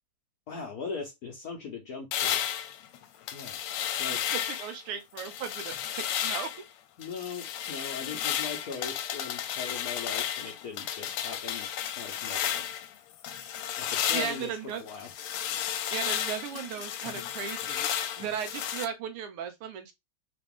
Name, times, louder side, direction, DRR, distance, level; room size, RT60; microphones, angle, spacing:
voice 1, 0.5-2.4 3.3-3.6 4.0-4.2 7.0-11.7 12.0-12.6 13.8-15.1, left 5 dB, 65° left, 0.9 m, -40 dB
sound 1, 2.1-4.8 5.2-6.6 7.0-12.9 13.2-18.9, left 10 dB, 85° left, 1.5 m, -33 dB
voice 2, 4.1-6.5 14.1-14.8 15.9-19.9, right 8 dB, 90° right, 1.7 m, -36 dB
3.9 x 2.5 x 3.5 m
omnidirectional pair, 2.4 m